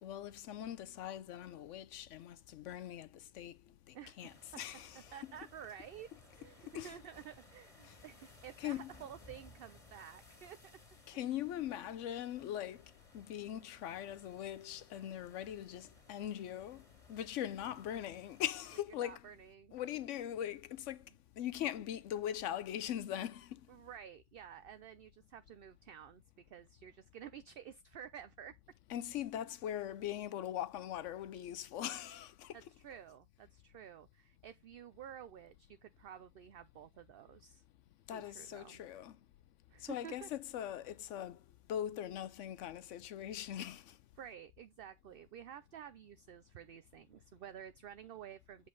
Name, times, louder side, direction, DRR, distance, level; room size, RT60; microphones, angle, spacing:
voice 1, 0.0-3.6 3.9-5.5 6.7-7.0 7.8-7.9 8.6-8.9 11.1-12.8 13.1-16.8 17.1-19.3 19.7-21.0 21.4-23.6 28.9-32.7 38.1-39.2 39.8-41.4 41.7-44.0, left 11 dB, 80° left, 0.9 m, -41 dB
voice 2, 3.9-4.6 4.9-6.1 6.4-10.8 19.0-19.8 23.7-26.2 26.5-28.5 32.5-37.6 38.1-38.8 39.7-40.3 44.2-48.7, right 9 dB, 60° right, 0.7 m, -51 dB
sound 1, 4.2-18.8, left 2 dB, 25° left, 2.4 m, -61 dB
7.8 x 5.2 x 3.8 m
omnidirectional pair, 1.3 m